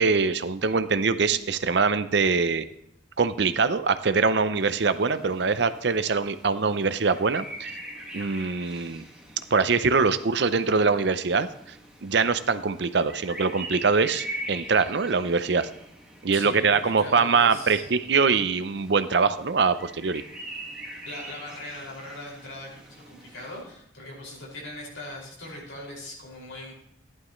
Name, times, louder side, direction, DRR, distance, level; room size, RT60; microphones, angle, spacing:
voice 1, 0.0-2.6 3.2-7.8 8.1-9.0 9.5-11.5 12.0-15.7 16.2-20.2, right 4 dB, 60° right, 12 dB, 0.6 m, -23 dB
sound 1, 4.5-23.6, right 1 dB, 5° right, 1.7 m, -43 dB
voice 2, 16.3-17.8 21.0-26.7, left 1 dB, 85° left, -3 dB, 5.5 m, -40 dB
15.0 x 11.0 x 3.1 m, 0.73 s
head